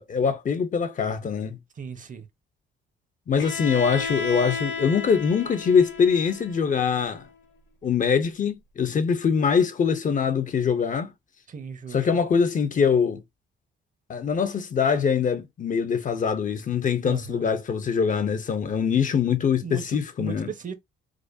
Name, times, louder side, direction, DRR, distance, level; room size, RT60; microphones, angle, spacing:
voice 1, 0.0-1.6 3.3-7.3 7.8-11.1 11.9-13.2 14.1-20.5, left 6 dB, 40° left, 0.6 m, -23 dB
voice 2, 1.8-2.3 11.5-12.1 17.0-17.4 19.6-20.7, right 6 dB, 40° right, 0.8 m, -37 dB
Bowed string instrument, 3.4-7.3, left 4 dB, 65° left, 1.1 m, -34 dB
4.8 x 2.1 x 2.5 m
cardioid pair, 90°, 20 cm